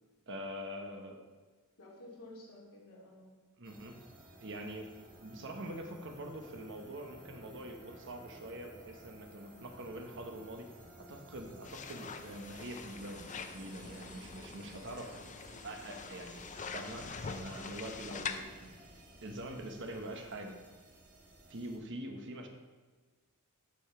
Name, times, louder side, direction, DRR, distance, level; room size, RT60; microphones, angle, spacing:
voice 1, 0.3-1.2 3.6-4.0 4.4-4.9 5.2-10.7 10.9-15.2 15.6-18.7 19.2-20.6 21.5-22.5, right 1 dB, 55° right, 4 dB, 1.2 m, -44 dB
voice 2, 1.8-3.4, left 1 dB, 80° left, -3 dB, 2.6 m, -52 dB
sound 1, 3.6-21.8, right 1 dB, 40° right, 1.8 m, -55 dB
sound 2, 11.6-18.4, left 5 dB, 35° left, 0.5 m, -44 dB
13.5 x 5.5 x 4.4 m, 1.4 s
head